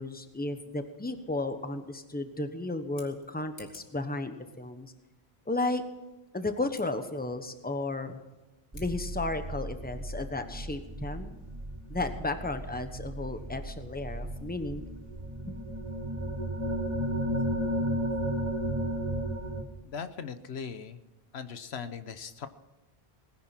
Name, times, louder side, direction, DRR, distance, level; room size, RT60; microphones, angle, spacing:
voice 1, 0.0-4.9 5.5-5.8 6.3-8.2 8.7-11.3 11.9-14.9 15.4-15.6, left 2 dB, 10° left, 8 dB, 1.1 m, -34 dB
Scissors, 2.8-4.0 6.7-6.9 8.7-8.9, left 2 dB, 65° left, 2.6 m, -53 dB
sound 1, 8.7-19.6, right 1 dB, 30° right, 2.2 m, -34 dB
voice 2, 19.8-21.0 21.3-22.5, left 6 dB, 85° left, 11 dB, 1.2 m, -39 dB
19.0 x 10.5 x 5.8 m, 1.1 s
omnidirectional pair, 1.1 m